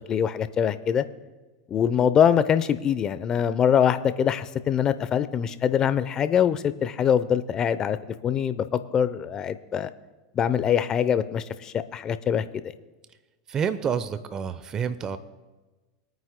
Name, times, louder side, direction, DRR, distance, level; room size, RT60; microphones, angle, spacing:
voice 1, 0.1-1.0 1.7-8.6 8.9-9.9 10.3-12.4, left 8 dB, 35° left, 13 dB, 0.7 m, -23 dB
voice 2, 13.5-15.2, right 7 dB, 30° right, 13 dB, 0.7 m, -28 dB
23.0 x 9.2 x 2.2 m, 1.2 s
hypercardioid pair, 100°, 2 cm